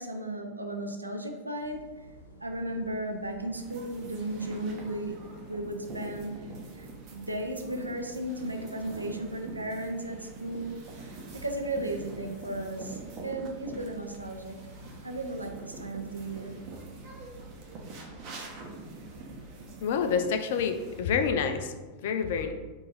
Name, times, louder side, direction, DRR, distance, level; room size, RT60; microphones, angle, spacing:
voice 1, 0.0-2.1 2.4-5.2 5.5-6.3 6.8-10.8 11.1-14.6 15.0-16.5, right 1 dB, 85° right, 3 dB, 0.5 m, -35 dB
sound 1, 1.6-20.2, right 1 dB, 75° left, 0.7 m, -50 dB
sound 2, 3.5-21.0, right 3 dB, 40° right, 0.8 m, -45 dB
voice 2, 19.8-21.7 22.0-22.5, left 6 dB, 55° left, 7 dB, 0.4 m, -28 dB
3.7 x 2.6 x 4.1 m, 1.2 s
figure-of-eight pair, 90°, 0 cm